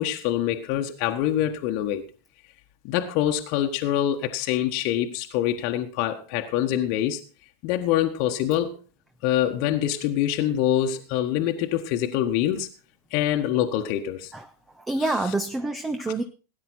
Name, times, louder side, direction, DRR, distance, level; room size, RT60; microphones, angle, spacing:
voice 1, 0.0-2.0 2.8-7.2 7.6-8.7 9.2-12.7 13.1-14.3 15.0-15.1, left 11 dB, 45° left, 1.4 m, -25 dB
voice 2, 14.7-16.2, right 2 dB, 10° right, 0.9 m, -27 dB
18.5 x 9.9 x 4.2 m
figure-of-eight pair, 90°, 0 cm